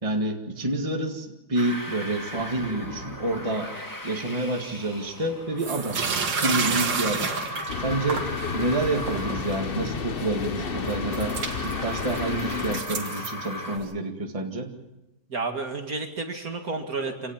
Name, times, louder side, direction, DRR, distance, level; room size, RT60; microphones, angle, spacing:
voice 1, 0.0-3.7 4.0-7.3 7.8-8.3 8.5-14.7, right 2 dB, 20° right, 3 dB, 1.9 m, -28 dB
sound 1, 1.5-13.8, left 1 dB, 10° left, 2.1 m, -37 dB
sound 2, 5.6-8.3 8.8-9.5 10.2-10.3 10.8-13.9, right 5 dB, 70° right, 2.6 m, -30 dB
sound 3, 7.7-12.8, left 6 dB, 40° left, 0.9 m, -32 dB
voice 2, 15.3-17.3, right 3 dB, 50° right, 4 dB, 2.4 m, -31 dB
26.5 x 18.0 x 7.3 m, 0.95 s
omnidirectional pair, 2.1 m